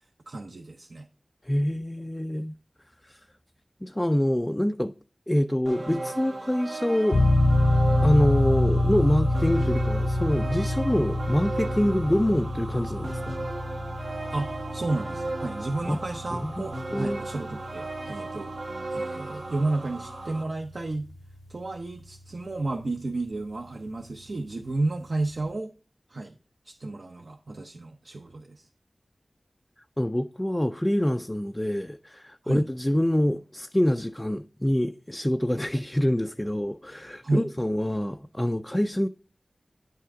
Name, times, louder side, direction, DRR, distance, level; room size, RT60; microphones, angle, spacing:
voice 1, 0.3-1.1 14.3-18.5 18.9-21.1 21.5-25.7 26.1-26.4 26.6-28.7 32.4-32.6 37.2-37.5, right 2 dB, 70° right, 0.7 m, -32 dB
voice 2, 1.4-2.5 3.0-3.2 3.8-4.9 5.3-7.2 8.0-13.4 15.9-16.0 16.3-16.7 16.9-17.2 30.0-39.1, equal, 15° left, 0.3 m, -26 dB
sound 1, 5.7-20.4, right 2 dB, 85° right, 1.2 m, -36 dB
sound 2, 7.1-21.5, left 1 dB, 80° left, 0.7 m, -27 dB
9.0 x 5.6 x 3.6 m
wide cardioid pair, 70°, 0 cm